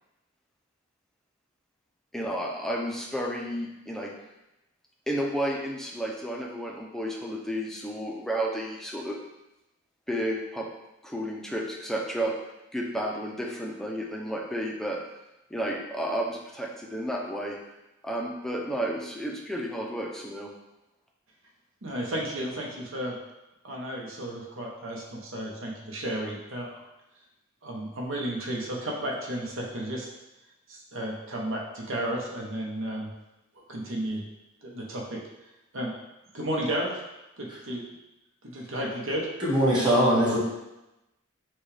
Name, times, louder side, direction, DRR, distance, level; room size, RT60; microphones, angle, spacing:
voice 1, 2.1-4.1 5.1-9.2 10.1-10.7 11.0-12.3 12.7-15.0 15.5-17.6 18.0-20.5, right 1 dB, ahead, -1 dB, 0.5 m, -32 dB
voice 2, 21.8-23.1 23.6-26.8 27.6-30.1 30.7-33.1 33.7-34.2 34.6-35.2 35.7-35.9 36.3-37.0 37.4-37.8 38.4-39.3, right 1 dB, 70° right, -2 dB, 1.0 m, -33 dB
voice 3, 39.4-40.4, equal, 20° right, -7 dB, 1.6 m, -21 dB
6.1 x 2.4 x 3.3 m, 0.94 s
head